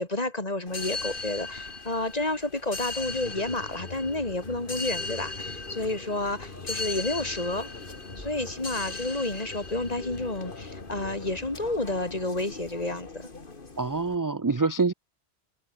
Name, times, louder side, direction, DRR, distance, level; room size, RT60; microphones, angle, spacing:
voice 1, 0.0-7.7 8.2-13.3, left 2 dB, 35° left, 2.9 m, -30 dB
sound 1, 0.7-14.1, left 3 dB, 55° left, 2.3 m, -38 dB
sound 2, 3.1-11.8, equal, 15° left, 5.2 m, -51 dB
voice 2, 13.8-14.9, right 4 dB, 25° right, 0.5 m, -25 dB
omnidirectional pair, 1.1 m